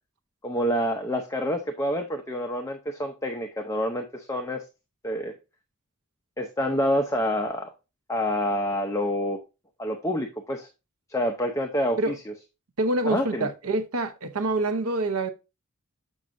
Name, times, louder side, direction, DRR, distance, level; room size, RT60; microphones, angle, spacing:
voice 1, 0.4-4.6 5.0-5.3 6.4-7.7 8.1-9.4 9.8-10.7 11.1-12.3 13.1-13.5, equal, 15° left, 0.6 m, -27 dB
voice 2, 12.8-15.3, right 2 dB, 85° right, 0.8 m, -26 dB
7.2 x 6.2 x 2.5 m
head